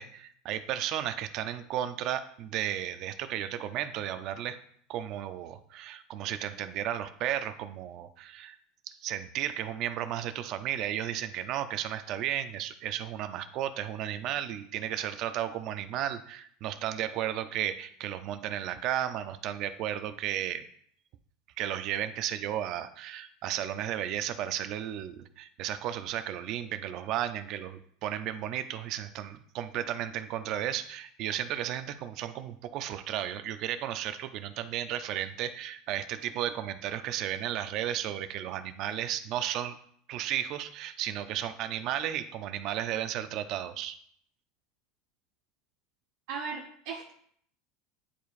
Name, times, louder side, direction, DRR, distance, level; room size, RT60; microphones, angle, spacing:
voice 1, 0.0-4.6 4.9-8.6 8.9-20.6 21.6-39.8 40.1-43.9, right 11 dB, 45° right, 11 dB, 0.5 m, -34 dB
voice 2, 46.3-47.1, right 5 dB, 65° right, -2 dB, 1.0 m, -37 dB
10.0 x 4.6 x 2.5 m, 0.63 s
supercardioid pair, 150°, 0 cm